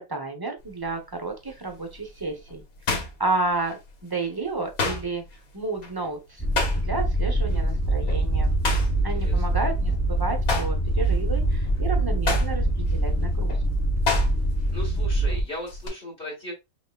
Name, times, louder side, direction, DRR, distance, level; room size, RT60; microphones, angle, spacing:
voice 1, 0.0-2.6 2.9-5.2 5.5-6.4 6.7-8.6 9.0-13.6, right 3 dB, 20° right, 4 dB, 0.7 m, -31 dB
sound 1, 0.6-0.9 1.5-4.0 4.3-7.2 7.5-7.7 8.1-10.0 10.3-14.7 15.0-15.9, left 3 dB, 85° left, 1.7 m, -31 dB
sound 2, 6.4-15.4, right 1 dB, 15° left, 0.7 m, -24 dB
voice 2, 9.0-9.6 14.7-16.5, left 1 dB, 45° left, -2 dB, 2.1 m, -37 dB
5.5 x 3.1 x 2.3 m, 0.23 s
omnidirectional pair, 1.5 m